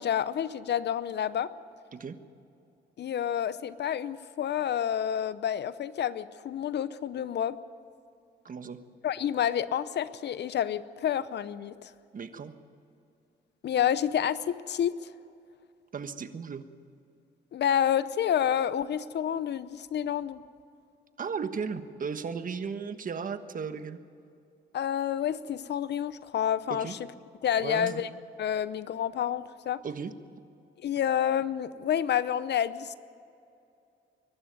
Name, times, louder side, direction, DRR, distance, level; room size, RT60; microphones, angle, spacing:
voice 1, 0.0-1.5 3.0-7.6 9.0-11.9 13.6-15.1 17.5-20.4 24.7-27.0 27.4-28.1 28.4-29.8 30.8-32.9, left 9 dB, 60° left, 16 dB, 0.7 m, -29 dB
voice 2, 8.4-8.8 12.1-12.5 15.9-16.6 21.2-24.0 26.7-26.9 27.6-28.0 29.8-30.1, right 6 dB, 45° right, 10 dB, 1.4 m, -35 dB
23.0 x 12.0 x 9.4 m, 2.6 s
cardioid pair, 90°, 20 cm